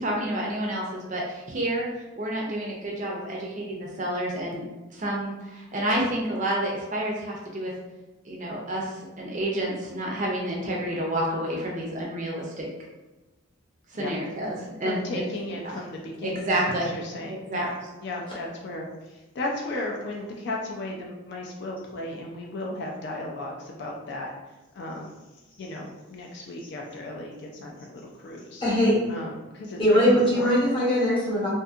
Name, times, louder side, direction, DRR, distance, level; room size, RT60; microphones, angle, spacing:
voice 1, 0.0-1.8 2.2-4.6 4.9-7.7 8.2-12.7 13.9-15.2 15.6-15.8 16.2-16.9 17.2-17.7, right 1 dB, 35° right, -2 dB, 0.4 m, -29 dB
voice 2, 14.8-17.7 18.0-24.3 24.7-25.1 25.6-28.6 29.1-30.5, left 2 dB, 50° left, -1 dB, 0.3 m, -35 dB
voice 3, 28.6-29.0 29.8-31.5, equal, 25° left, -7 dB, 0.8 m, -21 dB
2.6 x 2.6 x 2.3 m, 1.1 s
head